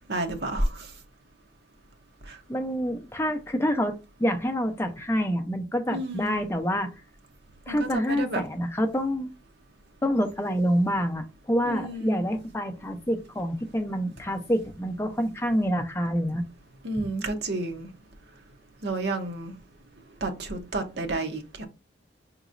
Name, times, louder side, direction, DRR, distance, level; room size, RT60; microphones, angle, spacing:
voice 1, 0.1-0.9 2.2-2.4 5.9-6.3 7.7-8.4 11.6-12.2 16.8-17.9 18.8-19.5 20.2-21.7, right 2 dB, 60° right, 0.8 m, -30 dB
voice 2, 2.5-6.9 7.7-9.3 10.0-16.5 17.0-17.1, equal, 15° left, 0.5 m, -27 dB
5.1 x 2.9 x 2.5 m
head